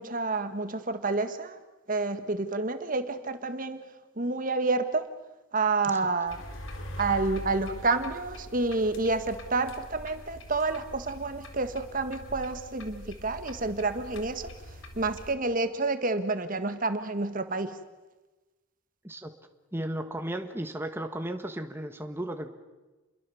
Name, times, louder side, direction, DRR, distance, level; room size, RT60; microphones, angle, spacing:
voice 1, 0.0-1.6 1.9-3.8 4.2-5.1 5.5-6.4 7.0-14.5 14.9-17.8, right 3 dB, 40° right, 9 dB, 1.7 m, -29 dB
sound 1, 6.3-15.4, left 1 dB, 70° left, 3.7 m, -43 dB
voice 2, 19.7-22.5, right 1 dB, 10° right, 5 dB, 1.4 m, -35 dB
29.5 x 22.5 x 7.1 m, 1.1 s
head